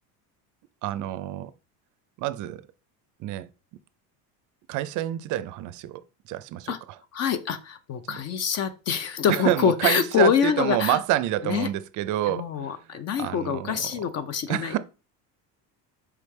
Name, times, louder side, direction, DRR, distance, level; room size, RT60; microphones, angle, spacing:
voice 1, 0.8-1.5 2.2-2.6 3.2-3.5 4.7-6.0 6.3-6.7 8.1-8.2 9.3-12.7 13.2-14.0 14.5-14.8, right 14 dB, 50° right, 0.4 m, -27 dB
voice 2, 7.1-11.0 11.4-11.7 12.3-14.7, left 7 dB, 40° left, 0.4 m, -25 dB
4.7 x 3.3 x 3.1 m
cardioid pair, 120°, 41 cm